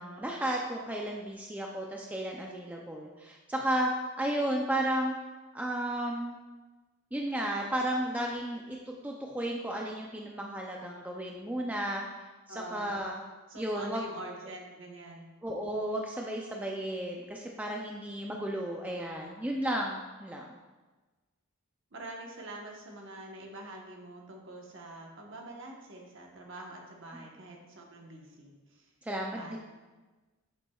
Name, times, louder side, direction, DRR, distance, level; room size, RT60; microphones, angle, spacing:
voice 1, 0.0-5.1 5.5-6.4 7.1-12.1 12.5-13.2 13.6-14.0 15.4-20.6 27.1-27.3 29.0-29.6, right 1 dB, 5° right, -1 dB, 0.4 m, -33 dB
voice 2, 12.5-12.9 13.5-15.3 21.9-28.9 29.3-29.6, right 1 dB, 55° right, 0 dB, 1.1 m, -45 dB
8.1 x 7.1 x 2.3 m, 1.2 s
head